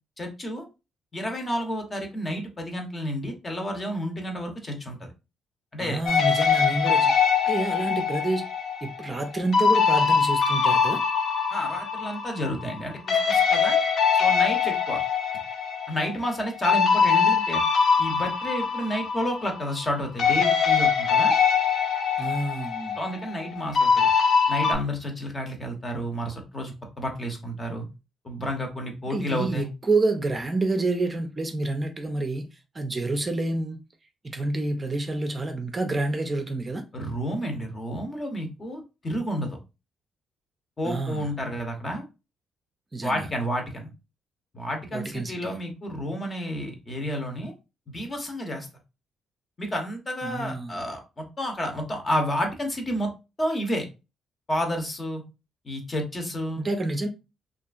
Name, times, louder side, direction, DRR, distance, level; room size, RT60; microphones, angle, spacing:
voice 1, 0.2-0.6 1.1-5.1 5.7-6.0 11.5-13.8 14.1-15.0 15.9-17.6 18.0-21.3 23.0-24.1 24.5-27.8 28.2-29.7 36.9-39.6 40.8-42.0 43.0-43.9 44.5-47.5 47.9-48.7 49.6-53.1 53.4-53.9 54.5-55.2 55.6-56.6, equal, 30° left, 0.8 m, -30 dB
voice 2, 5.8-7.1 7.4-8.4 8.8-11.0 22.2-23.0 29.1-33.8 34.2-36.8 40.8-41.3 42.9-43.3 44.9-45.6 50.2-50.8 56.6-57.1, right 2 dB, 25° right, 0.4 m, -28 dB
sound 1, 6.1-12.8 13.1-19.9 20.2-24.7, left 6 dB, 60° left, 0.5 m, -23 dB
2.7 x 2.4 x 2.4 m
cardioid pair, 90°, 0 cm